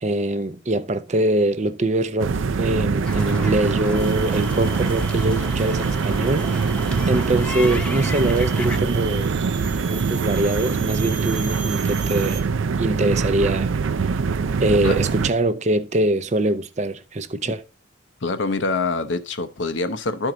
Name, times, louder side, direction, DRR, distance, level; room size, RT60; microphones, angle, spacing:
voice 1, 0.0-6.5 7.1-9.3 9.9-12.4 12.8-13.7 14.6-17.6, right 2 dB, 35° right, 0.6 m, -23 dB
sound 1, 2.2-15.3, right 5 dB, 90° right, 0.5 m, -23 dB
sound 2, 3.0-8.8, equal, 5° left, 0.9 m, -32 dB
sound 3, 3.9-12.4, right 7 dB, 65° right, 1.0 m, -37 dB
voice 2, 18.2-20.3, left 3 dB, 70° left, 0.8 m, -25 dB
11.5 x 4.6 x 3.8 m
head